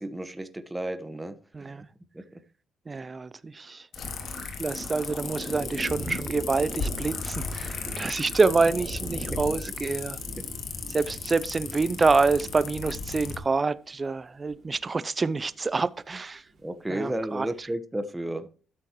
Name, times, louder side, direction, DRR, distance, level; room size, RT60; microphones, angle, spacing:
voice 1, 0.0-1.7 2.1-2.4 16.6-18.5, right 1 dB, 10° right, 1.2 m, -33 dB
voice 2, 1.5-1.9 2.9-3.9 4.6-10.2 10.9-16.4 16.9-17.7, right 4 dB, 30° right, 0.5 m, -27 dB
sound 1, 3.9-13.4, left 5 dB, 70° left, 2.0 m, -36 dB
sound 2, 4.0-9.6, left 1 dB, 35° left, 5.6 m, -41 dB
Thunder, 5.4-15.2 15.5-16.6, right 2 dB, 45° right, 3.7 m, -43 dB
13.0 x 7.6 x 3.0 m
cardioid pair, 90°, 0 cm